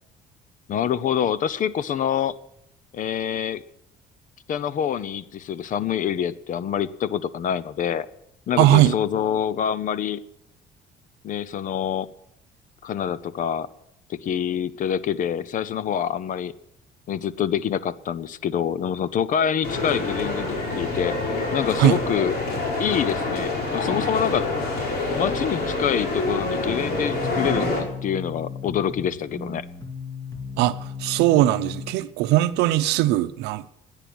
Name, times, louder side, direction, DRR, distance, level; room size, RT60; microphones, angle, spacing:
voice 1, 0.7-2.4 2.9-3.6 4.5-8.1 8.5-10.2 11.2-12.1 12.8-13.7 14.1-16.5 17.1-21.2 21.5-22.3 22.8-24.5 25.2-29.6, left 9 dB, 50° left, 0.7 m, -26 dB
voice 2, 8.6-8.9 21.8-22.0 30.6-33.6, right 14 dB, 85° right, 0.7 m, -19 dB
sound 1, 19.6-27.8, left 2 dB, 70° left, 5.0 m, -26 dB
sound 2, 26.6-32.0, left 5 dB, 20° left, 2.0 m, -36 dB
17.0 x 10.0 x 6.2 m
cardioid pair, 110°, 17 cm